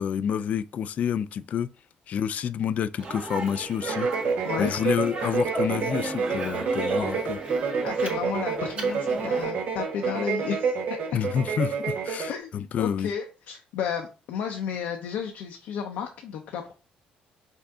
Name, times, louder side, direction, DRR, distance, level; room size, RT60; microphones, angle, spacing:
voice 1, 0.0-1.7 2.1-4.1 4.6-7.4 11.1-13.1, left 8 dB, 55° left, 0.3 m, -28 dB
Speech, 3.0-9.4, right 2 dB, 45° right, 1.7 m, -36 dB
sound 1, 3.8-12.4, right 5 dB, 60° right, 0.8 m, -28 dB
voice 2, 7.8-10.8 12.3-16.7, left 7 dB, 85° left, 0.6 m, -32 dB
5.4 x 2.5 x 3.6 m
cardioid pair, 115°, 3 cm